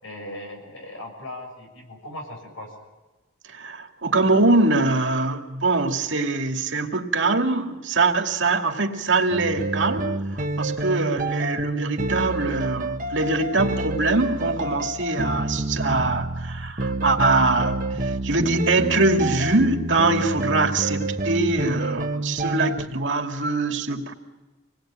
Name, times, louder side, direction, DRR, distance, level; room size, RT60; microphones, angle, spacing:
voice 1, 0.0-2.7, left 1 dB, 80° left, 3 dB, 7.2 m, -38 dB
voice 2, 3.5-24.1, right 3 dB, 65° right, 3 dB, 2.5 m, -23 dB
sound 1, 9.3-22.9, right 2 dB, 40° right, 1.4 m, -28 dB
27.0 x 19.5 x 9.1 m, 1.2 s
head